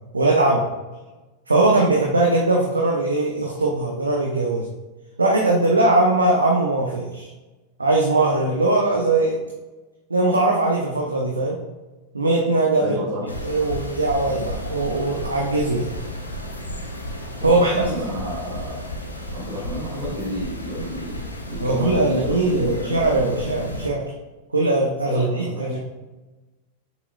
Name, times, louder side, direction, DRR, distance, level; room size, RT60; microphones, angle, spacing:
voice 1, 0.1-0.6 1.5-4.7 5.2-7.3 7.8-9.4 10.1-11.6 12.1-13.0 13.4-15.9 17.4-17.8 21.6-24.0 24.5-25.8, right 2 dB, 80° right, -1 dB, 0.8 m, -20 dB
voice 2, 12.8-13.3 17.4-18.7 19.3-21.2 21.5-23.4 25.0-25.8, equal, 40° right, -7 dB, 1.9 m, -30 dB
sound 1, 13.3-23.9, equal, 80° left, 0.8 m, -33 dB
7.4 x 6.0 x 2.4 m, 1.2 s
figure-of-eight pair, 90°, 0 cm